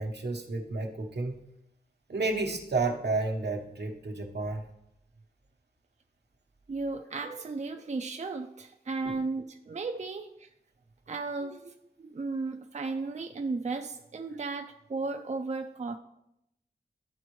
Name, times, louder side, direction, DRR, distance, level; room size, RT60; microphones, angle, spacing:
voice 1, 0.0-1.4 2.1-4.6 9.0-9.2, right 3 dB, 80° right, 2 dB, 1.0 m, -31 dB
voice 2, 6.7-10.5 11.1-16.0, right 3 dB, 45° right, 6 dB, 0.4 m, -35 dB
12.0 x 4.2 x 3.1 m, 0.80 s
wide cardioid pair, 75°, 17 cm